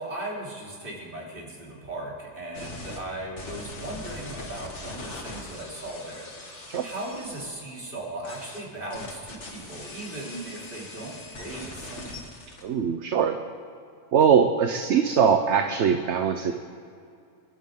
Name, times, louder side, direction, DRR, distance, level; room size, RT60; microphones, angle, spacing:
voice 1, 0.0-12.3, right 1 dB, 40° right, -4 dB, 3.9 m, -38 dB
sound 1, 2.5-3.0 3.4-7.4 8.2-12.6, left 2 dB, 60° left, 2.1 m, -41 dB
voice 2, 12.6-13.4 14.1-16.5, right 7 dB, 60° right, 6 dB, 1.1 m, -21 dB
28.5 x 11.5 x 3.8 m, 2.4 s
omnidirectional pair, 1.4 m